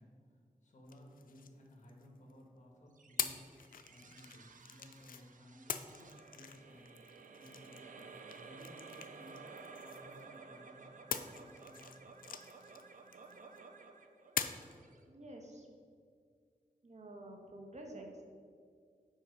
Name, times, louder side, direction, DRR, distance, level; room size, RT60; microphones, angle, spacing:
voice 1, 0.0-7.0 7.3-9.5 9.8-11.9, equal, 60° left, -1 dB, 1.5 m, -58 dB
sound 1, 0.9-2.3 3.2-5.2 5.7-10.4 11.1-13.6 14.4-14.8, left 7 dB, 90° left, 0.4 m, -44 dB
sound 2, 3.0-15.6, right 4 dB, 70° right, 0.6 m, -54 dB
voice 2, 15.1-15.7 16.8-18.2, right 1 dB, 55° right, 1 dB, 1.4 m, -50 dB
7.6 x 4.9 x 5.3 m, 2.2 s
cardioid pair, 55°, 14 cm